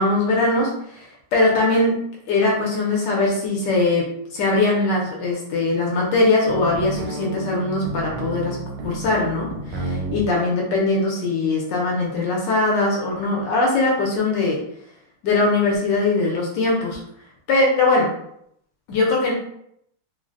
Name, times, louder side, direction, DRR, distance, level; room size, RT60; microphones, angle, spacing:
voice 1, 0.0-2.0 2.3-8.6 8.8-14.6 15.2-17.0 17.5-18.1 18.9-19.3, left 2 dB, 70° left, -2 dB, 1.1 m, -21 dB
sound 1, 6.5-10.3, right 2 dB, 75° right, 1.2 m, -31 dB
3.8 x 2.1 x 2.4 m, 0.73 s
omnidirectional pair, 2.3 m